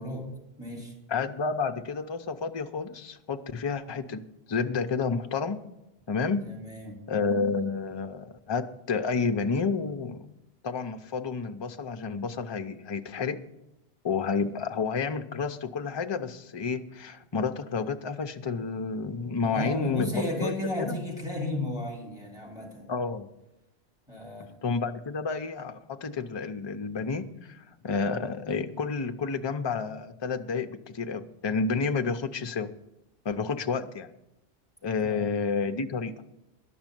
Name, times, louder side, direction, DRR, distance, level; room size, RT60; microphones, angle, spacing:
voice 1, 0.0-0.9 6.5-7.0 19.4-22.9 24.1-24.5 35.0-35.3, left 1 dB, 5° right, -1 dB, 2.9 m, -34 dB
voice 2, 1.1-5.6 6.1-6.6 7.1-10.3 10.6-13.4 14.0-21.0 22.9-23.3 24.6-32.8 33.2-34.1 34.8-36.2, left 5 dB, 30° left, 7 dB, 0.5 m, -30 dB
11.5 x 6.2 x 9.1 m, 0.90 s
omnidirectional pair, 1.1 m